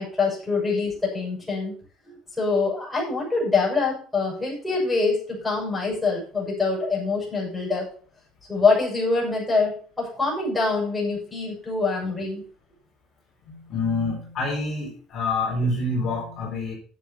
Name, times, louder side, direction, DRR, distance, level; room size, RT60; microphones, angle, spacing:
voice 1, 0.0-1.7 2.0-7.9 8.5-12.4, left 4 dB, 5° left, -5 dB, 6.5 m, -25 dB
voice 2, 13.5-16.7, left 2 dB, 40° left, -2 dB, 4.4 m, -27 dB
10.5 x 7.3 x 5.7 m, 0.43 s
cardioid pair, 150°, 0 cm